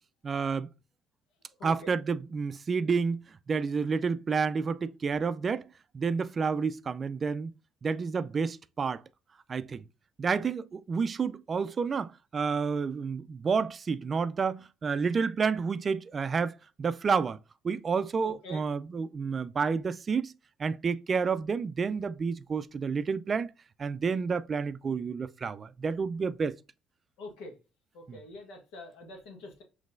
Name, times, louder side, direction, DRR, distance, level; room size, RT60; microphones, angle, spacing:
voice 1, 0.2-0.7 1.6-3.2 3.5-5.6 5.9-7.5 7.8-9.0 9.5-9.8 10.2-17.4 17.6-20.3 20.6-23.5 23.8-26.6 28.1-28.2, right 5 dB, 40° right, 0.3 m, -30 dB
voice 2, 1.6-1.9 10.3-10.4 18.2-18.6 27.2-27.6 27.9-29.6, left 1 dB, 80° left, 1.3 m, -45 dB
5.3 x 3.2 x 2.5 m
supercardioid pair, 80°, 0 cm